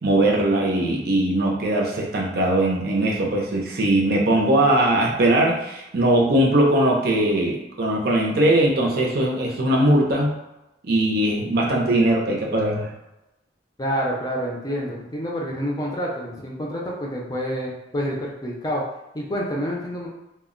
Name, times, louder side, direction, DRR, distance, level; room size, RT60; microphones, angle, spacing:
voice 1, 0.0-10.3 10.9-12.9, right 1 dB, 60° right, -1 dB, 0.5 m, -20 dB
voice 2, 13.8-18.8 19.1-20.1, equal, 20° left, -3 dB, 0.5 m, -28 dB
2.2 x 2.1 x 3.6 m, 0.93 s
head